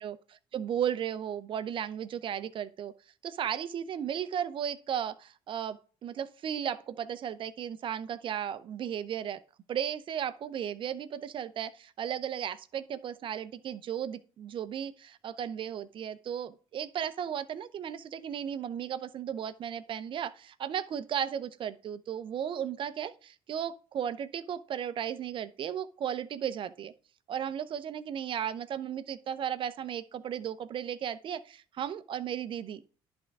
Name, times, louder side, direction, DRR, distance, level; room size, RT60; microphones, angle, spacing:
voice 1, 0.5-2.9 3.2-9.4 9.7-26.9 27.3-32.8, right 9 dB, 50° right, 0.7 m, -35 dB
11.0 x 3.7 x 4.7 m
supercardioid pair, 85°, 11 cm